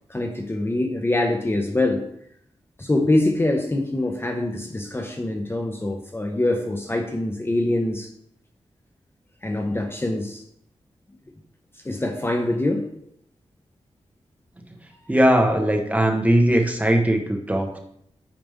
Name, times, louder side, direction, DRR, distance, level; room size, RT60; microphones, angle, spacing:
voice 1, 0.1-2.1 2.8-8.1 9.4-10.4 11.8-12.8, left 2 dB, 20° left, 3 dB, 0.8 m, -24 dB
voice 2, 15.1-17.8, right 1 dB, 15° right, 2 dB, 1.2 m, -19 dB
8.9 x 5.1 x 3.6 m, 0.73 s
wide cardioid pair, 95°, 11 cm